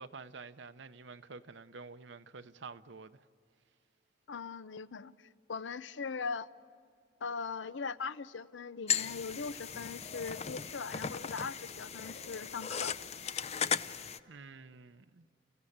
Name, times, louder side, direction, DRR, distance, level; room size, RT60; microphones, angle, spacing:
voice 1, 0.0-3.2 14.3-15.3, right 4 dB, 75° right, 0.7 m, -49 dB
voice 2, 4.3-6.5 7.2-12.9, left 5 dB, 85° left, 0.6 m, -40 dB
sound 1, 8.9-14.2, left 7 dB, 35° left, 0.6 m, -37 dB
30.0 x 16.0 x 8.7 m
head